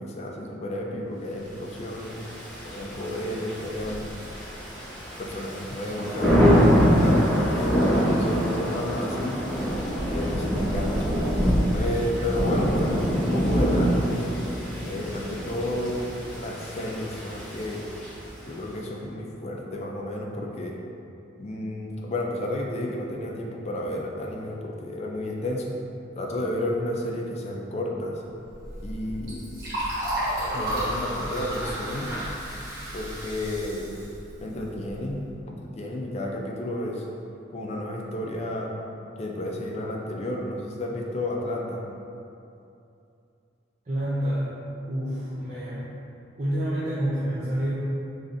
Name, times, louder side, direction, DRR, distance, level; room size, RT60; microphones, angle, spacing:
voice 1, 0.0-2.2 2.6-4.1 5.2-6.5 7.0-9.4 10.0-11.2 11.7-14.3 14.8-16.0 16.4-17.8 18.5-20.8 21.4-25.7 26.2-28.2 28.8-29.4 30.5-32.1 32.9-33.9 34.4-37.0 37.5-38.7 39.2-41.8, left 1 dB, 35° left, -1 dB, 0.4 m, -31 dB
Thunder / Rain, 1.9-18.5, equal, 5° left, 1.1 m, -25 dB
Liquid, 28.4-35.1, equal, 55° right, 1.3 m, -32 dB
voice 2, 43.8-44.5 44.9-45.9 46.3-47.7, equal, 40° right, -9 dB, 0.5 m, -28 dB
4.0 x 3.2 x 2.5 m, 2.7 s
head